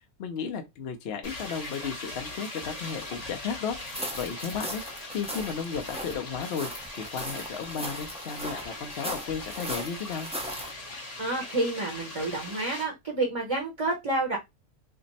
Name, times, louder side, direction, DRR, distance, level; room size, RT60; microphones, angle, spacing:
voice 1, 0.2-6.7 7.0-10.3, left 6 dB, 60° left, 0.8 m, -34 dB
sound 1, 1.2-12.8, left 2 dB, 35° left, 0.9 m, -40 dB
Gravel walk, 3.8-10.7, equal, 10° right, 0.3 m, -38 dB
voice 2, 11.2-14.4, right 2 dB, 30° right, 0.8 m, -29 dB
3.4 x 2.0 x 3.9 m
omnidirectional pair, 1.4 m